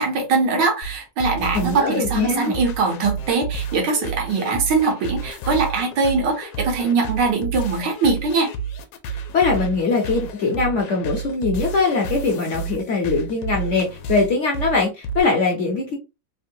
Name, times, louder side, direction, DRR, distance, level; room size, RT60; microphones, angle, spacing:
voice 1, 0.0-8.5, right 4 dB, 75° right, 1.6 m, -22 dB
sound 1, 0.8-15.2, right 4 dB, 80° left, 1.3 m, -31 dB
voice 2, 1.5-2.5 9.1-16.0, left 4 dB, 60° left, 0.8 m, -21 dB
3.6 x 2.2 x 2.6 m
omnidirectional pair, 1.9 m